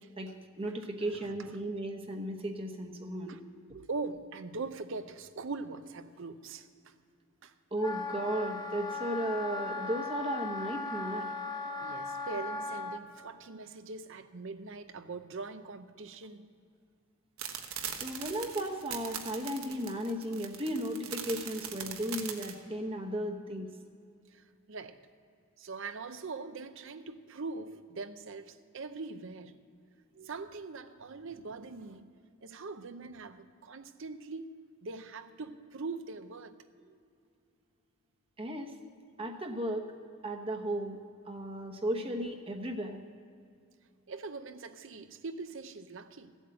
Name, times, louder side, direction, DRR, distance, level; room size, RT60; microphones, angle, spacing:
voice 1, 0.2-3.4 7.7-11.3 18.0-23.7 38.4-38.7 39.2-39.9 40.2-41.0 41.2-43.0, right 1 dB, 25° right, 1.0 m, -35 dB
voice 2, 1.1-1.5 3.3-3.4 3.7-6.9 7.4-7.5 11.8-16.5 24.3-25.0 25.6-29.6 30.1-32.1 32.4-36.6 36.8-37.0 44.1-46.3, right 4 dB, 60° right, 0.7 m, -42 dB
Wind instrument woodwind instrument, 7.8-13.0, left 3 dB, 20° left, 0.8 m, -37 dB
sound 1, 17.4-22.5, right 8 dB, 80° right, 1.2 m, -40 dB
15.0 x 8.1 x 7.6 m
head